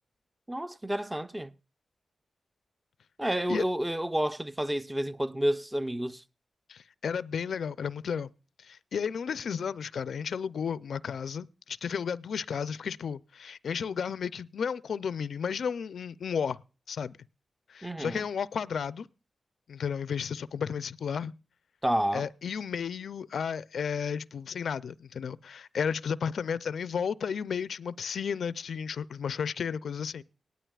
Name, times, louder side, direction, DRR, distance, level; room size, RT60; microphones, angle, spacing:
voice 1, 0.5-1.5 3.2-6.2 17.8-18.2 21.8-22.3, equal, 10° right, 0.6 m, -30 dB
voice 2, 6.7-8.3 8.6-16.6 16.9-17.2 17.7-19.1 19.7-21.3 22.1-30.2, left 7 dB, 85° left, 0.5 m, -33 dB
18.5 x 12.5 x 2.3 m
wide cardioid pair, 90°, 0 cm